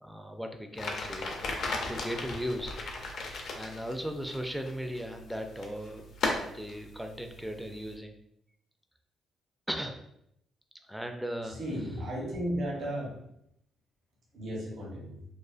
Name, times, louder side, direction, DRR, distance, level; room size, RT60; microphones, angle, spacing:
voice 1, 0.0-2.8 3.5-8.2 9.7-10.0 10.9-11.6, equal, ahead, 4 dB, 0.3 m, -37 dB
sound 1, 0.8-7.9, left 3 dB, 65° left, 0.5 m, -37 dB
voice 2, 11.4-13.3 14.3-15.2, equal, 60° right, -3 dB, 0.8 m, -35 dB
2.4 x 2.4 x 2.4 m, 0.75 s
cardioid pair, 90°, 0 cm